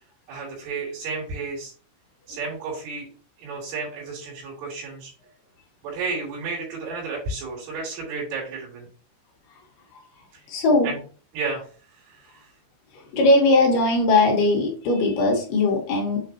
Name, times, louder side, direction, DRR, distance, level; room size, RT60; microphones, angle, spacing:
voice 1, 0.3-1.7 2.3-3.1 3.4-5.1 5.8-8.9 10.3-10.4 10.8-11.0 11.3-11.7 12.1-12.5, right 4 dB, 85° right, -6 dB, 5.3 m, -32 dB
voice 2, 10.5-10.9 12.9-16.2, left 2 dB, 65° left, 0 dB, 2.2 m, -19 dB
8.5 x 4.0 x 2.7 m, 0.38 s
omnidirectional pair, 5.5 m